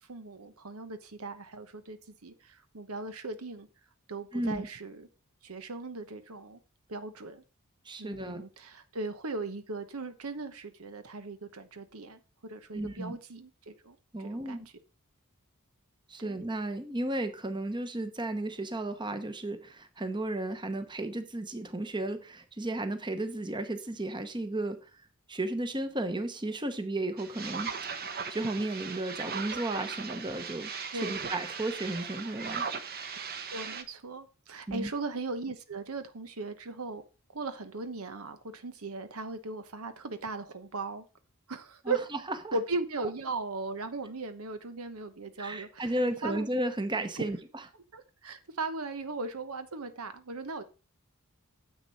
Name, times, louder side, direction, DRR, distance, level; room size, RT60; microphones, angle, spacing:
voice 1, 0.0-3.7 4.1-5.1 5.4-6.6 6.9-7.4 8.0-14.6 16.2-16.4 30.9-31.1 33.5-37.0 37.3-41.0 41.5-42.0 42.5-45.9 46.2-46.5 47.2-47.3 47.9-50.6, right 3 dB, 85° right, 1.0 m, -38 dB
voice 2, 4.3-4.7 7.8-8.4 12.7-13.2 14.1-14.7 16.1-24.9 25.3-27.7 28.3-30.7 31.0-32.7 34.7-34.9 41.8-42.0 42.4-42.5 45.4-47.4, right 1 dB, 20° right, 1.0 m, -34 dB
sound 1, 27.2-33.8, right 6 dB, 45° right, 1.0 m, -38 dB
9.8 x 7.5 x 4.1 m
head